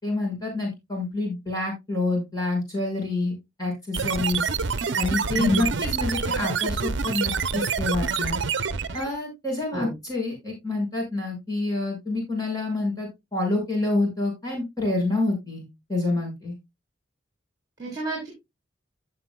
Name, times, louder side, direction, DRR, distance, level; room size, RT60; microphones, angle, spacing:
voice 1, 0.0-3.3 3.6-4.5 5.0-8.4 8.9-16.5, left 2 dB, 20° left, -1 dB, 5.9 m, -27 dB
sound 1, 3.9-9.1, right 5 dB, 70° right, 0.7 m, -27 dB
voice 2, 5.3-5.8 9.7-9.9 17.8-18.3, equal, 20° right, -3 dB, 4.3 m, -28 dB
15.0 x 6.3 x 2.3 m, 0.21 s
head